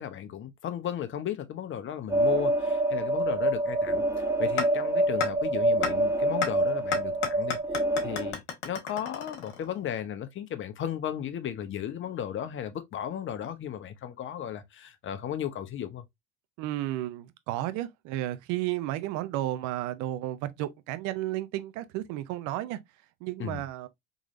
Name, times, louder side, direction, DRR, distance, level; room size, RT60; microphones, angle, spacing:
voice 1, 0.0-7.6 8.0-16.0 23.4-23.7, left 10 dB, 35° left, 0.8 m, -35 dB
sound 1, 2.1-8.3, right 1 dB, 10° right, 1.3 m, -26 dB
Bouncing Golf Ball, 4.6-4.7 5.2-5.3 5.8-5.9 6.4-6.5 6.9-9.8, left 7 dB, 70° left, 1.4 m, -31 dB
voice 2, 16.6-22.8 23.2-23.9, right 14 dB, 60° right, 0.6 m, -32 dB
3.8 x 3.1 x 2.4 m
hypercardioid pair, 80°, 34 cm